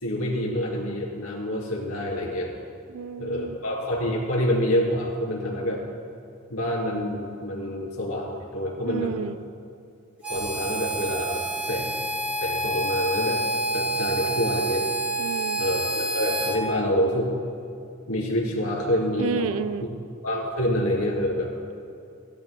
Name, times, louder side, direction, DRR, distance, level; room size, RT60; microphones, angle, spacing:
voice 1, 0.0-2.5 3.2-5.8 6.5-9.1 10.3-12.0 12.4-13.4 13.7-14.8 15.6-17.3 18.1-19.5 20.2-21.5, equal, 75° left, -3 dB, 3.0 m, -27 dB
voice 2, 2.9-3.6 8.9-9.4 15.2-15.6 19.2-19.9, right 6 dB, 65° right, 12 dB, 0.4 m, -30 dB
Harmonica, 10.2-16.6, right 1 dB, 5° right, 2.1 m, -28 dB
18.5 x 12.0 x 2.3 m, 2.4 s
head